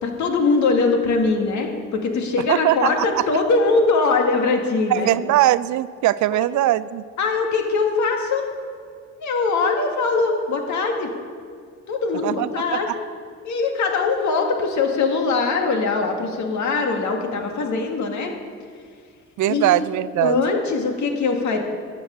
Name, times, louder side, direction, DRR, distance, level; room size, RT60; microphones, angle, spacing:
voice 1, 0.0-5.1 7.2-8.5 9.2-11.1 11.9-12.9 13.4-18.3 19.5-19.8 20.2-21.6, left 4 dB, 70° left, 3 dB, 2.0 m, -21 dB
voice 2, 2.5-3.3 4.9-7.0 12.2-12.5 12.9-13.0 19.4-20.4, right 14 dB, 70° right, 17 dB, 0.5 m, -20 dB
12.5 x 6.3 x 8.9 m, 2.1 s
cardioid pair, 90°, 30 cm